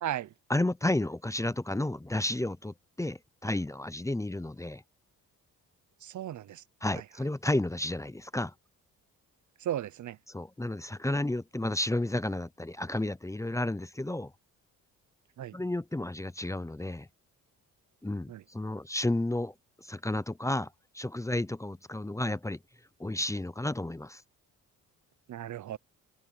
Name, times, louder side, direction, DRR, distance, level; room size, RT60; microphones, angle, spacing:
voice 1, 0.5-4.8 6.8-8.5 10.3-14.3 15.5-17.1 18.0-22.6 23.0-24.2, left 1 dB, 10° left, 0.8 m, -32 dB
voice 2, 6.0-6.6 9.6-10.2 15.4-15.5 18.3-18.4 25.3-25.8, right 11 dB, 60° right, 0.8 m, -35 dB
cardioid pair, 75°, 34 cm